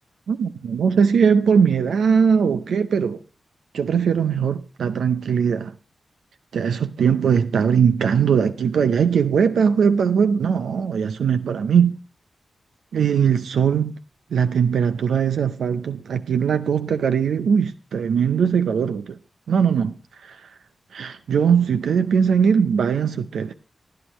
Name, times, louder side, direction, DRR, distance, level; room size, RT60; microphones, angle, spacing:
voice 1, 0.3-3.2 3.7-5.7 6.5-12.0 12.9-14.0 14.3-19.2 19.5-19.9 20.2-20.4 20.9-23.5, right 7 dB, 80° right, 0.5 m, -20 dB
15.5 x 10.5 x 3.1 m
supercardioid pair, 40°, 0 cm